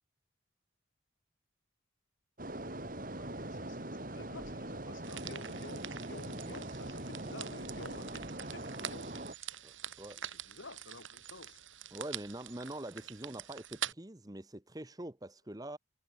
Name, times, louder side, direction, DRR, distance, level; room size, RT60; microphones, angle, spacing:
sound 1, 2.4-9.3, right 1 dB, 45° right, 3.0 m, -42 dB
voice 1, 3.2-9.6 10.2-11.6, left 2 dB, 70° left, 2.8 m, -51 dB
sound 2, 5.0-13.9, right 10 dB, 75° right, 4.4 m, -45 dB
voice 2, 9.6-10.2 11.9-15.8, right 1 dB, 20° right, 1.0 m, -44 dB
head